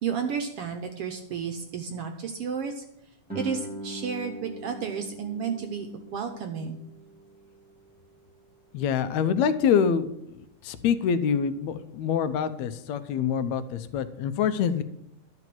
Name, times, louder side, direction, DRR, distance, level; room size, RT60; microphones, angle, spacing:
voice 1, 0.0-2.8 3.3-6.8, right 6 dB, 65° right, 5 dB, 1.6 m, -32 dB
Guitar, 3.3-8.7, right 1 dB, 5° right, 1.7 m, -42 dB
voice 2, 8.7-10.1 10.6-14.8, left 7 dB, 75° left, 11 dB, 2.0 m, -25 dB
12.0 x 6.1 x 7.6 m, 0.79 s
omnidirectional pair, 3.4 m